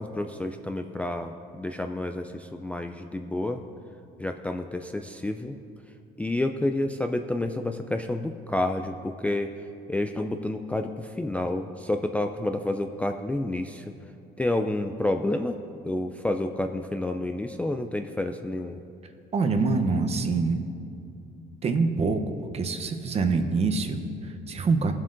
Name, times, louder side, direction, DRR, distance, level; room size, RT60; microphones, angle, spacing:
voice 1, 0.0-3.6 4.2-5.6 6.2-9.5 9.9-13.8 14.4-15.6 15.8-18.8, left 1 dB, 10° left, 5 dB, 0.3 m, -29 dB
voice 2, 19.3-20.6 21.6-22.2 22.5-24.9, right 4 dB, 40° right, 6 dB, 0.7 m, -25 dB
16.5 x 7.4 x 2.6 m, 2.6 s
cardioid pair, 110°, 17 cm